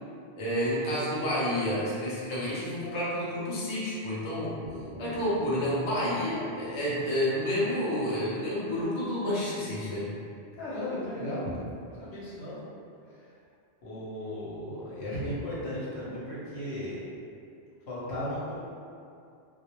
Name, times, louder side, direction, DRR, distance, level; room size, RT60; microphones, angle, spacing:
voice 1, 0.4-4.5 5.0-10.1, equal, 40° left, -8 dB, 0.4 m, -29 dB
sound 1, 4.6-8.5, left 1 dB, 60° right, 0.7 m, -48 dB
voice 2, 10.6-11.5 12.0-12.6 13.1-13.2 13.8-17.0 17.9-18.6, left 1 dB, 75° left, -8 dB, 1.0 m, -35 dB
2.3 x 2.0 x 2.9 m, 2.5 s
omnidirectional pair, 1.1 m